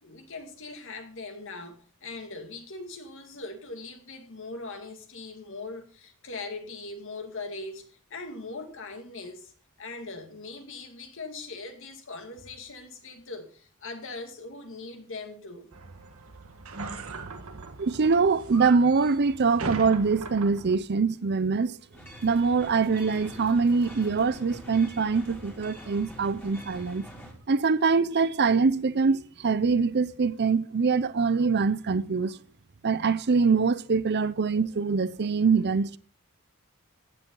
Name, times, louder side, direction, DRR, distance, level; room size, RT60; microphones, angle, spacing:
voice 1, 0.0-9.5 9.8-15.7, left 3 dB, 65° left, 2.2 m, -40 dB
sound 1, 15.7-20.8, right 3 dB, 75° right, 1.5 m, -39 dB
voice 2, 17.8-21.8 22.2-27.1 27.5-32.4 32.8-36.0, right 4 dB, 50° right, 0.6 m, -24 dB
sound 2, 21.9-27.3, equal, 10° left, 2.7 m, -45 dB
14.5 x 10.0 x 3.9 m
head